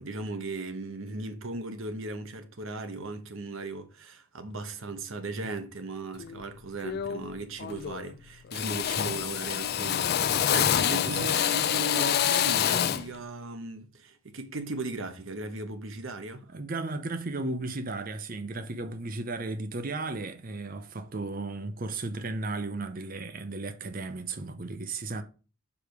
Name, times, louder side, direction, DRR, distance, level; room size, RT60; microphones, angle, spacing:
voice 1, 0.0-16.4, right 2 dB, 65° right, 1.0 m, -37 dB
Drill, 6.2-6.4 6.8-7.3 7.6-8.2 8.5-13.1, left 10 dB, 45° left, 0.3 m, -27 dB
voice 2, 16.5-25.2, right 3 dB, 40° right, 0.6 m, -35 dB
4.9 x 4.9 x 5.0 m
head